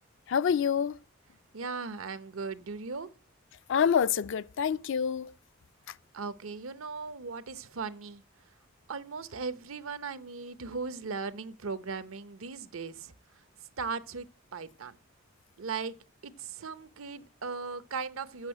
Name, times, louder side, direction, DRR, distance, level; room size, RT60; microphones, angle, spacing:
voice 1, 0.3-1.0 3.7-5.3, left 7 dB, 65° left, 0.4 m, -27 dB
voice 2, 1.5-3.1 6.1-8.2 8.9-13.1 13.8-15.0 15.6-15.9 16.2-18.5, right 4 dB, 80° right, 0.8 m, -38 dB
8.2 x 6.2 x 7.8 m
head